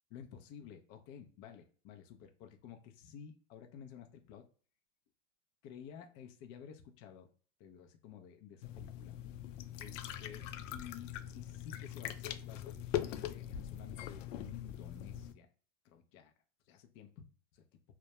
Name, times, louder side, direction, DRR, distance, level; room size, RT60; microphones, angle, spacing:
voice 1, 0.1-4.5 5.6-7.3 7.6-9.2 9.8-15.5 15.8-16.3 16.7-17.3 17.5-17.6, left 8 dB, 35° left, 5 dB, 0.4 m, -53 dB
sound 1, 8.6-15.3, left 11 dB, 85° left, 0.5 m, -42 dB
2.2 x 2.1 x 2.8 m, 0.42 s
supercardioid pair, 135°, 37 cm